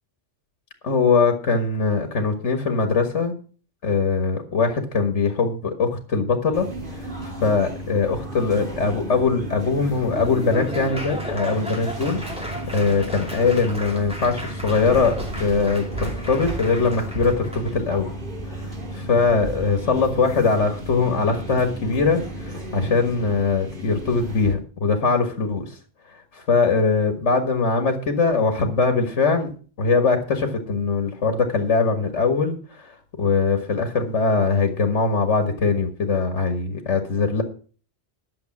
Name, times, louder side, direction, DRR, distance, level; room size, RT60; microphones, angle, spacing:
voice 1, 0.8-3.3 3.8-6.7 6.9-18.1 18.4-25.8 26.1-29.5 29.8-37.4, left 4 dB, 90° left, 6 dB, 1.9 m, -22 dB
sound 1, 6.5-24.5, right 1 dB, 45° right, 2.8 m, -33 dB
Laughter / Applause, 9.9-17.7, equal, 5° right, 2.6 m, -35 dB
11.5 x 7.0 x 7.2 m, 0.41 s
omnidirectional pair, 1.2 m